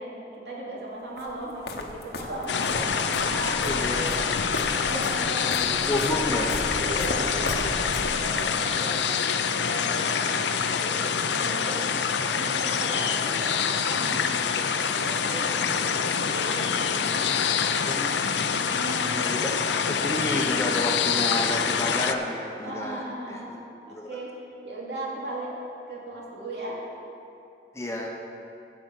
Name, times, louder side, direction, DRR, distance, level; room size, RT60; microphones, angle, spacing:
voice 1, 0.0-5.7 6.7-9.1 9.5-14.2 14.8-17.8 18.6-19.1 22.6-23.5 23.9-24.3 24.6-25.5 25.9-26.8, right 1 dB, 75° right, -4 dB, 2.5 m, -37 dB
sound 1, 1.2-8.5, left 1 dB, 65° left, 0.9 m, -35 dB
sound 2, 2.5-22.2, left 6 dB, 80° left, 0.5 m, -26 dB
voice 2, 3.7-4.1 5.4-6.5 17.8-18.2 19.1-23.0 23.3-23.4 23.9-24.2 27.7-28.1, left 1 dB, 15° left, 0 dB, 0.8 m, -30 dB
15.5 x 5.2 x 6.1 m, 2.7 s
head